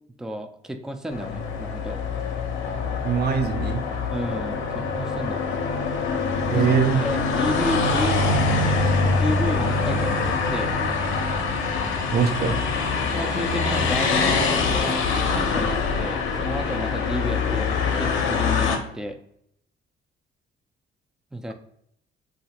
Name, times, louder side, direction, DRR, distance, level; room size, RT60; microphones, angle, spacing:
voice 1, 0.2-2.0 4.1-5.6 6.5-6.7 7.0-8.2 9.1-10.7 13.1-19.2 21.3-21.5, equal, 5° right, 7 dB, 0.3 m, -32 dB
sound 1, 1.1-18.8, left 4 dB, 80° left, 0.6 m, -24 dB
voice 2, 3.0-3.8 6.5-7.0 12.1-12.6, right 6 dB, 55° right, 7 dB, 0.5 m, -22 dB
3.0 x 2.5 x 2.8 m, 0.72 s
cardioid pair, 90°, 20 cm